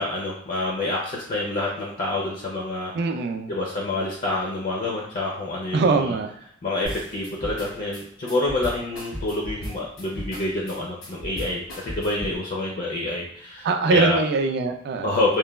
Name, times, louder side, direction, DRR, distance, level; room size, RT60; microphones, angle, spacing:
voice 1, 0.0-2.9 3.5-6.0 6.6-14.2 15.0-15.4, left 2 dB, 45° left, -3 dB, 0.4 m, -27 dB
voice 2, 2.9-3.5 5.7-6.3 13.6-15.2, right 4 dB, 55° right, 6 dB, 0.3 m, -22 dB
sound 1, 6.8-12.4, equal, 80° left, 1.0 m, -36 dB
3.1 x 2.1 x 2.2 m, 0.68 s
head